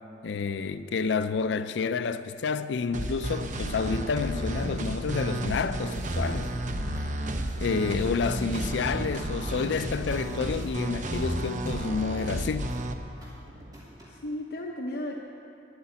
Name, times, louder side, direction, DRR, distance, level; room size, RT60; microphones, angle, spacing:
voice 1, 0.2-6.5 7.6-12.7, left 5 dB, 80° left, 0.4 m, -29 dB
sound 1, 2.9-12.9, right 1 dB, 45° right, 0.8 m, -32 dB
sound 2, 5.9-14.3, equal, 20° right, 2.9 m, -50 dB
voice 2, 14.1-15.2, left 1 dB, 60° left, 0.9 m, -36 dB
11.5 x 8.2 x 9.6 m
head